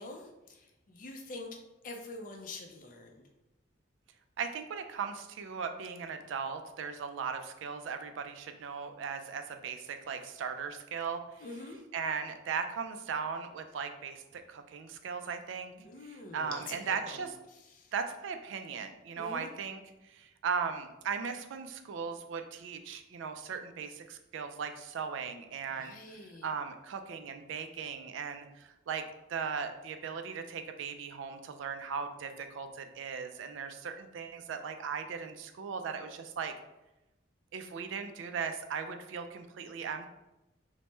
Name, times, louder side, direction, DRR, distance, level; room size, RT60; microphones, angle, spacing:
voice 1, 0.0-3.2 11.4-11.8 15.8-17.9 19.2-19.5 25.7-26.5, left 2 dB, 40° left, 2 dB, 0.4 m, -46 dB
voice 2, 4.4-11.5 11.9-15.7 16.0-17.3 17.9-19.8 20.0-29.0 29.3-36.5 37.5-40.1, right 6 dB, 75° right, 7 dB, 0.3 m, -38 dB
2.9 x 2.1 x 3.2 m, 0.98 s
head